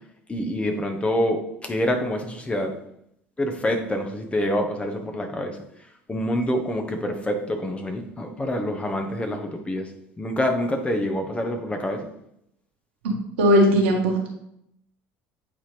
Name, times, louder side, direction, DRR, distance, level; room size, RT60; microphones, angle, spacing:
voice 1, 0.3-2.7 3.4-5.6 6.1-9.9 10.2-12.0, left 1 dB, 20° left, 4 dB, 1.2 m, -26 dB
voice 2, 13.4-14.3, equal, 80° right, -1 dB, 1.8 m, -18 dB
8.7 x 4.4 x 3.4 m, 0.76 s
hypercardioid pair, 65°, 6 cm